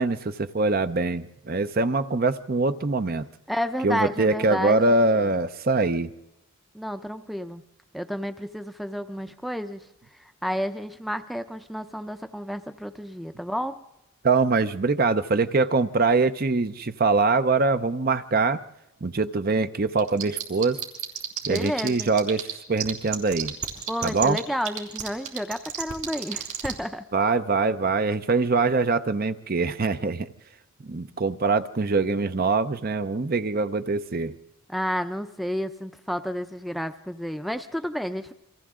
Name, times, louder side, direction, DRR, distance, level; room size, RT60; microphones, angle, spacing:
voice 1, 0.0-3.2 3.8-6.1 14.2-18.6 19.0-20.8 21.5-23.5 24.0-24.4 27.1-30.3 30.8-34.3, right 3 dB, 40° right, 11 dB, 0.6 m, -23 dB
voice 2, 3.5-4.8 5.1-5.3 6.7-7.6 7.9-13.8 21.5-22.1 23.9-27.1 34.7-38.3, equal, ahead, 8 dB, 0.6 m, -31 dB
sound 1, 20.0-22.5 22.8-26.7, right 10 dB, 80° right, 4.1 m, -30 dB
29.5 x 24.0 x 3.7 m, 0.95 s
head